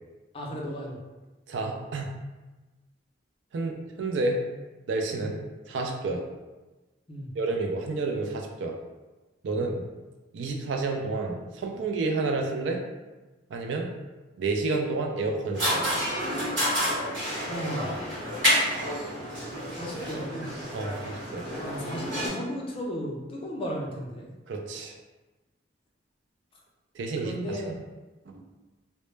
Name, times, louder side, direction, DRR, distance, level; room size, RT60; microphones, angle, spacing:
voice 1, 0.3-1.0 5.1-5.3 7.1-7.3 17.5-18.3 19.7-20.5 21.6-24.3 27.2-27.8, equal, 30° left, -2 dB, 0.4 m, -35 dB
voice 2, 1.5-2.1 3.5-4.4 4.9-5.3 5.7-6.2 7.4-8.8 9.4-9.8 10.3-12.8 13.5-13.9 14.4-15.9 20.7-21.5 24.5-24.9 26.9-27.8, right 3 dB, 70° right, 2 dB, 0.3 m, -30 dB
sound 1, 15.5-22.3, equal, 90° right, 1.0 m, -29 dB
2.1 x 2.0 x 3.1 m, 1.1 s
head